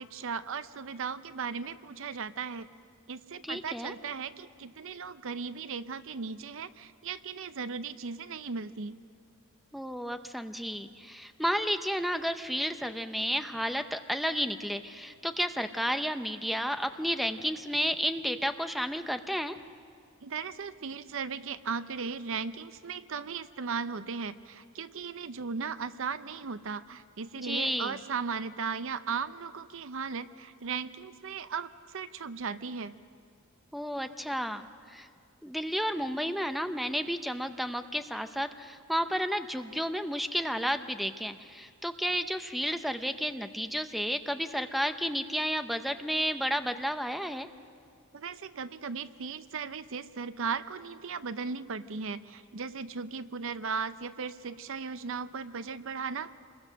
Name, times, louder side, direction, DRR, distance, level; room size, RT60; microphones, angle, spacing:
voice 1, 0.0-2.7 3.1-9.0 20.2-32.9 48.1-56.3, right 5 dB, 65° right, 13 dB, 0.6 m, -37 dB
voice 2, 3.4-3.9 9.7-19.6 27.4-28.0 33.7-35.1 35.4-47.5, equal, ahead, 8 dB, 0.7 m, -32 dB
27.0 x 21.5 x 6.4 m, 2.3 s
head